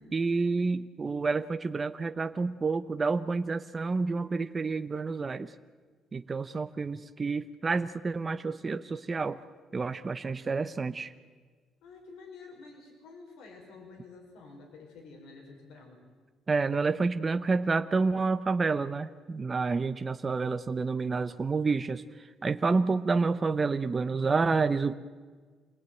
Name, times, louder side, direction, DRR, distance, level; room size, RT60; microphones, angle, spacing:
voice 1, 0.1-5.5 6.1-9.4 9.7-11.1 16.5-24.9, right 4 dB, 30° right, 9 dB, 0.8 m, -29 dB
voice 2, 11.8-16.1, left 4 dB, 80° left, 2 dB, 5.2 m, -50 dB
27.0 x 19.0 x 9.1 m, 1.5 s
cardioid pair, 105°, 0 cm